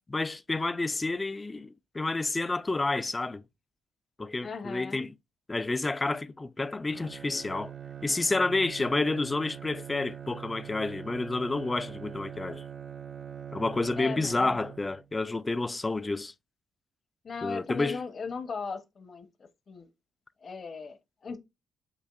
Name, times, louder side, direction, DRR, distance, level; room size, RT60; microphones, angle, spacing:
voice 1, 0.0-3.4 4.2-5.1 5.5-7.7 8.0-12.6 13.5-16.3 17.4-18.0, left 3 dB, 20° left, 0.3 m, -30 dB
voice 2, 4.4-5.1 14.0-14.6 17.2-19.3 19.7-19.9 20.4-21.4, left 5 dB, 45° left, 0.8 m, -37 dB
Bowed string instrument, 6.9-15.2, right 8 dB, 45° right, 0.4 m, -43 dB
6.9 x 2.5 x 2.3 m
cardioid pair, 75°, 0 cm